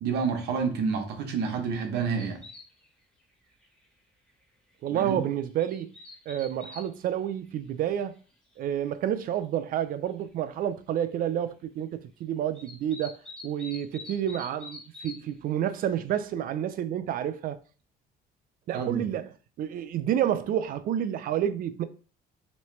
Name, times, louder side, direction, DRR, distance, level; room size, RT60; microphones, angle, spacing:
voice 1, 0.0-2.4 4.9-5.2 18.7-19.0, right 5 dB, 75° right, 0.9 m, -29 dB
sound 1, 2.2-2.9 3.2-3.3 3.6-3.8 4.3-4.4 5.3-6.9 7.5-7.6 8.9-9.0 9.5-9.6 9.8-10.2 12.5-15.2 15.5-16.2, left 3 dB, 5° left, 1.5 m, -45 dB
voice 2, 4.8-5.9 6.3-8.2 8.6-13.2 13.4-17.6 18.7-19.3 19.6-21.8, right 10 dB, 60° right, 0.4 m, -29 dB
3.2 x 3.1 x 3.1 m
cardioid pair, 110°, 17 cm